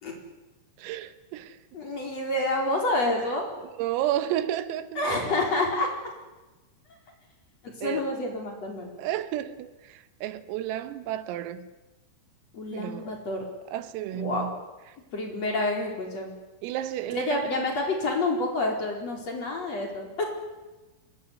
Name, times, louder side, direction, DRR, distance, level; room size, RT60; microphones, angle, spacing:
voice 1, 0.8-1.6 3.6-5.3 7.8-8.1 9.0-11.7 12.7-13.1 13.7-14.6 16.6-17.7, right 12 dB, 85° right, 3.9 m, -32 dB
voice 2, 1.7-3.5 5.0-5.9 7.6-8.9 12.5-13.5 14.1-14.5 15.1-16.3 17.1-20.2, left 2 dB, 30° left, 5.2 m, -28 dB
24.5 x 21.5 x 9.8 m
omnidirectional pair, 5.9 m